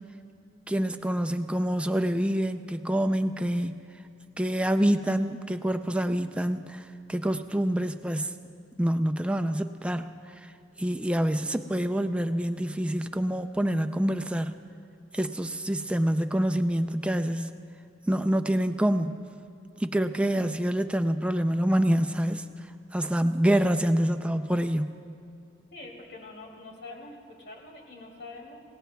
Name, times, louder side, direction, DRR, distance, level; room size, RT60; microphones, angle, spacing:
voice 1, 0.7-3.8 4.4-8.3 8.8-10.5 10.8-14.6 15.1-17.5 18.1-19.2 19.8-22.5 22.9-24.9, right 1 dB, 5° right, 9 dB, 0.4 m, -26 dB
voice 2, 25.7-28.6, left 2 dB, 60° left, -1 dB, 2.8 m, -45 dB
26.0 x 17.5 x 2.3 m, 2.5 s
head